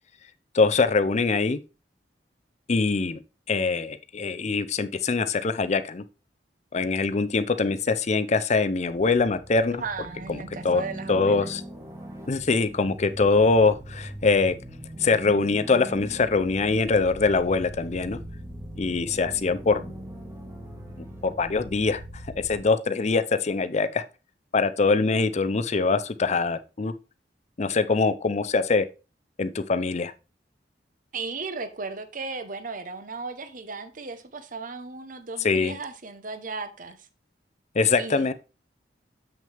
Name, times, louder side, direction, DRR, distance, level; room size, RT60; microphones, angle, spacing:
voice 1, 0.5-1.6 2.7-3.2 3.5-6.0 6.7-9.8 10.3-10.8 11.1-11.6 12.3-14.5 15.0-18.2 18.8-19.9 21.2-22.0 22.4-24.0 24.5-26.9 27.6-28.9 29.4-30.1 35.4-35.8 37.7-38.3, left 4 dB, 40° left, 0.5 m, -23 dB
sound 1, 8.9-22.6, right 1 dB, 15° right, 1.5 m, -40 dB
voice 2, 9.7-11.5 31.1-37.0 38.0-38.3, right 4 dB, 50° right, 0.9 m, -36 dB
7.3 x 6.2 x 3.4 m
head